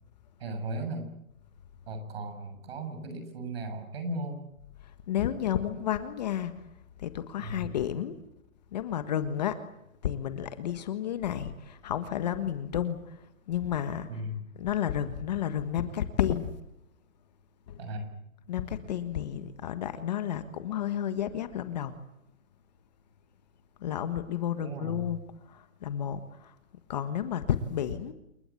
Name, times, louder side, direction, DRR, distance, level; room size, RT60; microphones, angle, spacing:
voice 1, 0.4-1.1 1.9-4.4 7.4-7.8 14.1-14.4 17.8-18.1 24.6-25.1, right 1 dB, 45° right, 7.2 m, -36 dB
voice 2, 4.8-6.6 7.0-8.2 8.7-9.6 10.0-14.2 14.6-16.5 17.7-17.8 18.5-22.0 23.8-26.5 26.9-28.1, left 10 dB, 30° left, 1.5 m, -31 dB
28.5 x 21.5 x 8.5 m
hypercardioid pair, 170°, 41 cm